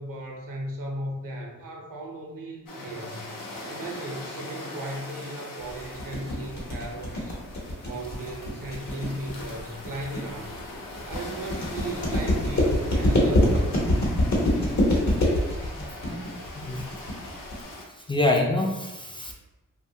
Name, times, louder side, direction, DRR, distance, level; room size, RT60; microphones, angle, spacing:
voice 1, 0.0-3.3 3.7-7.3 7.8-10.6 11.1-13.7, right 1 dB, 80° right, 1 dB, 0.6 m, -36 dB
sound 1, 2.7-17.8, left 2 dB, 90° left, 0.6 m, -41 dB
sound 2, 5.7-17.7, left 1 dB, 60° left, 0.9 m, -25 dB
voice 2, 15.7-16.8 18.1-19.3, left 2 dB, 15° left, 0 dB, 0.3 m, -27 dB
2.7 x 2.2 x 2.7 m, 1.1 s
wide cardioid pair, 70°, 32 cm